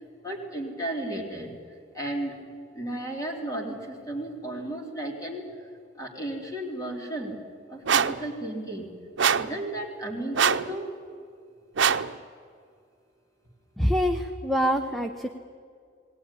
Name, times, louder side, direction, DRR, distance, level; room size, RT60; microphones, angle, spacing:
voice 1, 0.2-1.5 1.9-2.3 2.7-5.4 6.0-7.3 7.7-8.9 9.4-10.9, right 1 dB, 20° left, 0 dB, 3.4 m, -34 dB
sound 1, 7.9-8.2 9.2-9.6 10.3-10.7 11.8-12.1, right 7 dB, 90° right, 0.7 m, -23 dB
voice 2, 13.8-15.3, equal, ahead, 6 dB, 0.8 m, -25 dB
19.0 x 19.0 x 9.9 m, 2.2 s
head